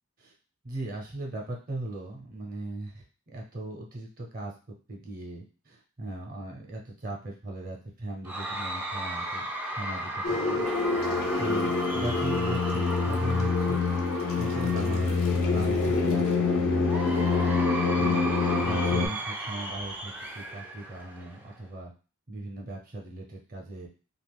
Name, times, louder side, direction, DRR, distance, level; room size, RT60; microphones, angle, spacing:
voice 1, 0.6-3.0 3.3-9.4 9.7-10.6 11.4-13.9 14.4-17.2 18.0-21.9 22.3-23.9, right 1 dB, 40° right, 0 dB, 0.7 m, -38 dB
Cheering / Crowd, 8.2-15.6 16.8-21.6, right 1 dB, 10° right, 0.3 m, -35 dB
sound 1, 10.2-19.1, left 4 dB, 65° left, 0.5 m, -26 dB
2.8 x 2.4 x 3.4 m, 0.35 s
head